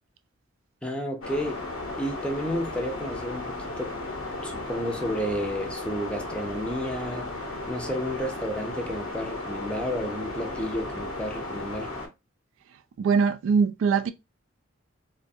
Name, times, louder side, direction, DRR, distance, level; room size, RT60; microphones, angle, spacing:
voice 1, 0.8-1.6 1.9-4.0 4.4-7.3 7.7-11.9, equal, 5° left, 0.4 m, -31 dB
sound 1, 1.2-12.1, left 2 dB, 90° left, 0.9 m, -35 dB
voice 2, 13.0-14.1, right 5 dB, 75° right, 0.3 m, -22 dB
2.4 x 2.2 x 2.6 m
head